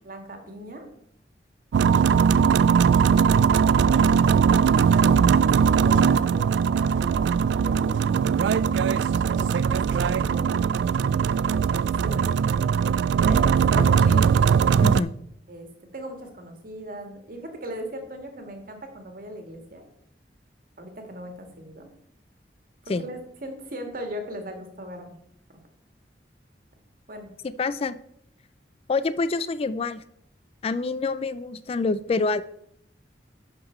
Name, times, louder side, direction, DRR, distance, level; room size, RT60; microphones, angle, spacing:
voice 1, 0.0-0.9 3.6-8.0 9.6-11.0 11.5-12.7 13.2-14.0 15.5-19.8 20.8-21.9 22.8-25.2 25.5-25.6 27.1-27.3, equal, 55° right, 4 dB, 1.7 m, -39 dB
sound 1, 1.7-15.0, right 6 dB, 90° right, 0.3 m, -20 dB
voice 2, 13.7-14.3 14.8-15.1 22.9-23.0 27.6-28.0 28.9-30.0 30.6-32.4, left 3 dB, 35° left, 15 dB, 0.3 m, -27 dB
11.0 x 5.8 x 4.3 m, 0.73 s
head